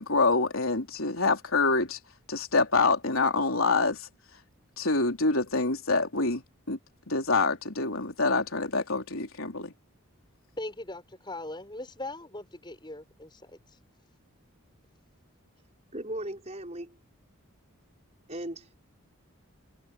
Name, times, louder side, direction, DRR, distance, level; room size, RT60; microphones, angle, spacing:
voice 1, 0.0-2.0 2.3-4.0 4.8-6.4 6.7-6.8 7.1-9.7, left 3 dB, 75° left, 3.7 m, -26 dB
voice 2, 10.6-13.6, left 2 dB, 20° left, 7.1 m, -40 dB
voice 3, 15.9-17.0 18.3-18.9, right 1 dB, 30° right, 5.8 m, -37 dB
head